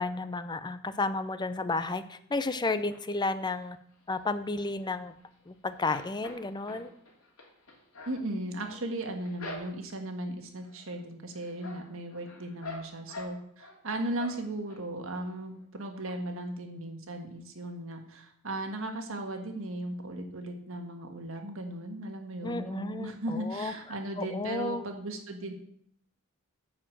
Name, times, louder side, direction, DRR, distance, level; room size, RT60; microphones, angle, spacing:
voice 1, 0.0-3.8 4.1-5.1 5.5-6.9 22.4-23.7 24.2-24.8, left 3 dB, 20° left, 12 dB, 0.5 m, -32 dB
sound 1, 2.9-3.7 4.1-5.4 5.7-10.1 10.6-11.0 11.3-13.8 14.1-14.8 15.2-15.3 15.6-15.7, left 2 dB, 80° left, 2.7 m, -46 dB
voice 2, 8.0-25.5, right 1 dB, 65° right, 4 dB, 1.6 m, -37 dB
9.9 x 4.9 x 7.5 m, 0.67 s
head